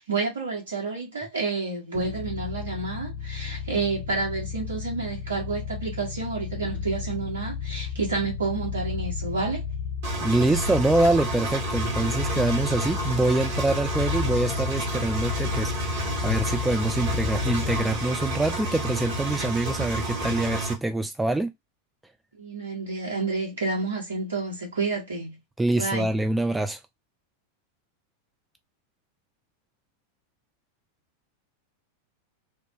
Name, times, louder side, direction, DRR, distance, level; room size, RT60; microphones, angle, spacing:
voice 1, 0.0-9.6 22.4-25.4 25.8-26.1, right 4 dB, 70° right, 1.7 m, -29 dB
sound 1, 1.9-18.1, left 6 dB, 70° left, 0.5 m, -33 dB
Engine, 10.0-20.7, right 1 dB, 50° right, 1.3 m, -30 dB
voice 2, 10.2-21.5 25.6-26.8, right 2 dB, 5° right, 0.3 m, -25 dB
3.0 x 2.1 x 3.0 m
figure-of-eight pair, 90°, 0 cm